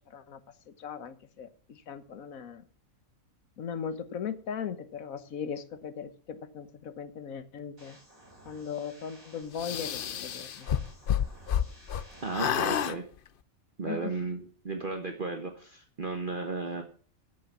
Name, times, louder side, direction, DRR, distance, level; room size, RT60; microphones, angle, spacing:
voice 1, 0.1-0.4 0.7-2.6 3.6-8.0 8.4-10.7 13.8-14.1, left 7 dB, 75° left, 12 dB, 1.5 m, -38 dB
sound 1, 7.8-12.8, right 1 dB, 75° right, 7.3 m, -54 dB
sound 2, 9.6-12.1 12.3-13.0, left 9 dB, 50° left, 0.7 m, -29 dB
voice 2, 12.2-13.0 13.8-16.8, right 3 dB, 40° right, 4 dB, 1.4 m, -34 dB
13.0 x 6.4 x 7.1 m, 0.42 s
omnidirectional pair, 1.4 m